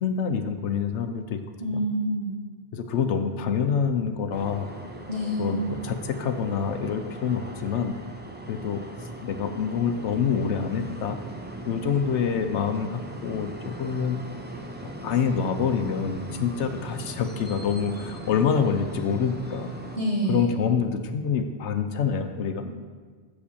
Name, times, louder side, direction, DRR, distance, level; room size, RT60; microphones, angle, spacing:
voice 1, 0.0-1.4 1.7-1.8 2.7-4.7 5.4-8.0 8.5-8.8 9.2-11.2 11.6-14.2 14.8-19.7 20.3-22.6, left 6 dB, 75° left, 8 dB, 0.9 m, -26 dB
voice 2, 1.6-2.4 5.1-5.7 11.7-11.9 19.9-20.6, right 1 dB, 55° right, -5 dB, 2.5 m, -27 dB
sound 1, 4.3-20.0, right 1 dB, 15° right, 0.4 m, -39 dB
7.1 x 5.0 x 6.9 m, 1.5 s
omnidirectional pair, 1.2 m